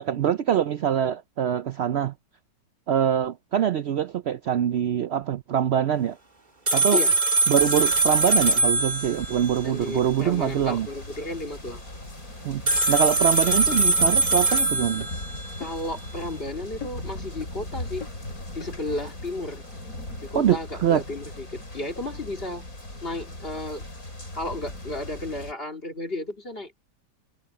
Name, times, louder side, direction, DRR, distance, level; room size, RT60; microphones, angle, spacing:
voice 1, 0.0-2.1 2.9-6.2 6.7-7.0 7.5-10.9 12.4-12.6 12.9-15.2 20.3-21.0, right 9 dB, 80° right, 0.6 m, -24 dB
sound 1, 6.7-9.6 12.7-15.5, right 2 dB, 30° right, 2.0 m, -22 dB
sound 2, 7.6-25.5, left 1 dB, 55° left, 6.9 m, -39 dB
voice 2, 9.6-11.8 15.6-18.1 18.5-19.6 20.2-22.7 23.0-23.8 24.4-26.8, left 2 dB, 35° left, 3.0 m, -33 dB
sound 3, 14.4-14.5 15.0-15.2 15.6-15.9 16.2-16.3 16.8-17.1 17.4-17.5 18.0-18.2 18.6-18.7, left 6 dB, 90° left, 3.3 m, -41 dB
omnidirectional pair, 1.8 m